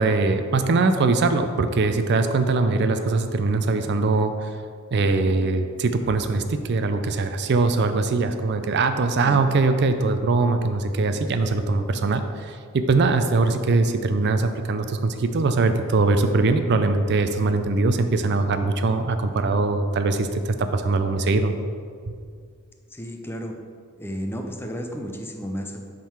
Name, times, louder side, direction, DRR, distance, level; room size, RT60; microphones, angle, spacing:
voice 1, 0.0-4.5 4.9-21.6, right 3 dB, 55° right, 8 dB, 0.4 m, -22 dB
voice 2, 22.9-23.5 24.0-25.8, equal, 10° left, 3 dB, 0.5 m, -32 dB
7.5 x 3.7 x 5.6 m, 2.2 s
head